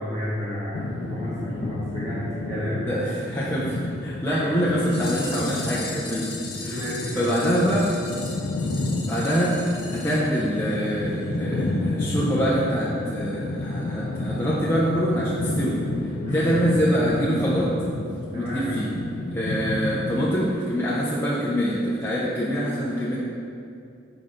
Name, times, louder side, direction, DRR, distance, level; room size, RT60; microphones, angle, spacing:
voice 1, 0.0-2.9 4.3-4.4 6.6-7.5 16.2-16.6 18.3-18.8, equal, 15° right, -11 dB, 1.1 m, -31 dB
sound 1, 0.7-20.3, left 2 dB, 90° left, 0.4 m, -31 dB
voice 2, 2.9-6.3 6.6-7.9 9.0-15.8 16.3-17.7 18.3-18.9 19.3-23.2, equal, 15° left, -7 dB, 0.5 m, -25 dB
sound 2, 4.8-11.0 11.2-11.3 11.6-11.7 12.1-12.2 12.5-12.6, left 4 dB, 60° left, 1.2 m, -38 dB
6.0 x 3.8 x 5.0 m, 2.5 s
head